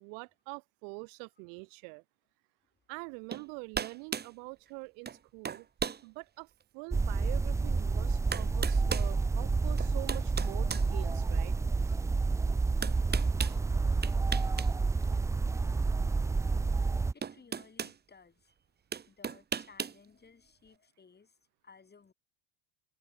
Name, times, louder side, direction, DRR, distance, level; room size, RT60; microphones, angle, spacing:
voice 1, 0.0-2.0 2.9-5.7 6.0-6.5 6.7-11.5 11.9-12.0, right 40 dB or more, 75° right, 1.9 m, -45 dB
sound 1, 3.3-3.5 3.7-4.3 5.1-5.2 5.4-6.0 6.6-6.7 7.8-7.9 8.3-9.1 9.8-11.5 12.8-13.6 14.0-14.7 15.0-15.2 16.6-16.7 17.2-18.0 18.9-20.0, right 7 dB, 25° right, 1.2 m, -36 dB
sound 2, 6.9-17.1, right 4 dB, 10° right, 0.3 m, -29 dB
voice 2, 16.5-18.5 19.1-21.4 21.6-22.1, left 5 dB, 25° left, 7.0 m, -59 dB
open air
supercardioid pair, 90°, 39 cm